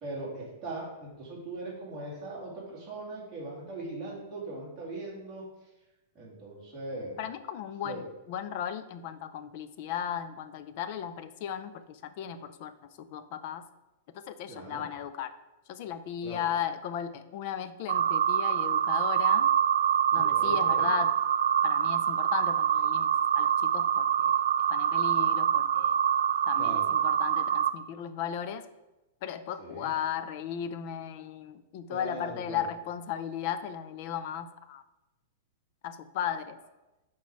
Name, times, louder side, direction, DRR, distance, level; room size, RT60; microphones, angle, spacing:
voice 1, 0.0-5.4 6.1-7.2 7.8-8.0 14.5-14.8 16.2-16.4 20.1-20.9 26.6-26.9 29.6-29.9 31.9-32.6, right 2 dB, 15° right, -7 dB, 2.2 m, -40 dB
voice 2, 7.2-13.6 14.3-15.4 15.7-19.5 20.1-21.1 21.6-23.1 23.4-24.3 24.7-26.0 26.5-28.6 29.2-34.8 35.8-36.6, left 9 dB, 40° left, 12 dB, 0.4 m, -36 dB
sound 1, 17.9-27.7, right 9 dB, 80° right, 0.3 m, -25 dB
6.0 x 4.3 x 4.7 m, 1.0 s
supercardioid pair, 170°, 0 cm